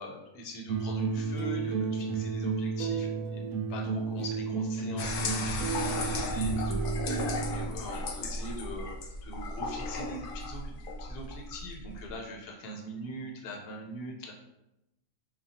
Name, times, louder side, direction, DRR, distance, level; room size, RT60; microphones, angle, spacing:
voice 1, 0.0-3.4 3.7-9.0 9.2-14.3, equal, 55° left, 0 dB, 0.8 m, -42 dB
sound 1, 0.7-7.7, right 5 dB, 75° right, 1.0 m, -32 dB
sound 2, 5.0-12.2, left 2 dB, 80° left, 0.4 m, -35 dB
5.1 x 2.3 x 2.7 m, 0.89 s
omnidirectional pair, 1.5 m